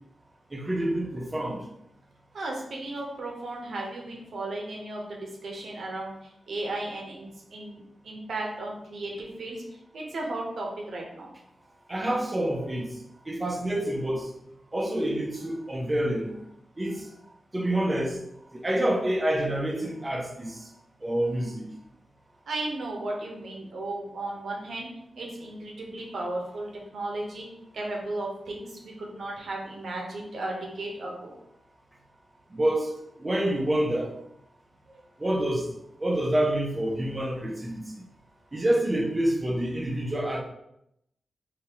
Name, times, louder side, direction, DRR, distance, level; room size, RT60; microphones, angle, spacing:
voice 1, 0.5-1.7 11.9-13.0 13.3-14.3 14.7-16.4 16.8-17.1 17.5-18.2 18.5-20.6 21.0-21.7 32.5-32.9 33.2-34.1 35.2-35.7 36.0-37.9 38.5-40.4, right 1 dB, 30° right, 2 dB, 0.7 m, -27 dB
voice 2, 2.3-9.6 9.9-11.3 22.5-24.9 25.2-27.4 27.7-31.4 34.9-35.0, right 2 dB, 75° right, -1 dB, 0.8 m, -35 dB
3.4 x 2.8 x 2.9 m, 0.78 s
cardioid pair, 45°, 0 cm